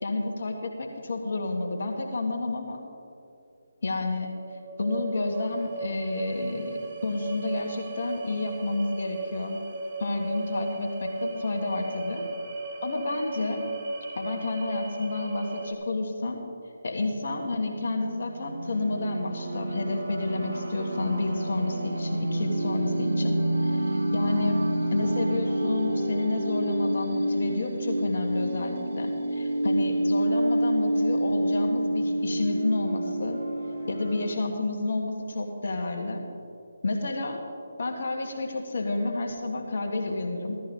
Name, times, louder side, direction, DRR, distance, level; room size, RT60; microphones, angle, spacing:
voice 1, 0.0-2.8 3.8-4.4 4.8-9.6 10.0-12.3 12.8-13.7 14.2-16.4 16.8-24.7 24.9-33.4 33.9-36.2 36.8-37.4 37.8-40.6, left 2 dB, 60° left, 2 dB, 1.9 m, -30 dB
sound 1, 4.2-15.7, right 3 dB, 35° right, 2.2 m, -36 dB
sound 2, 17.4-34.3, right 1 dB, 65° right, 2.4 m, -28 dB
16.0 x 13.5 x 4.0 m, 2.6 s
figure-of-eight pair, 155°, 0 cm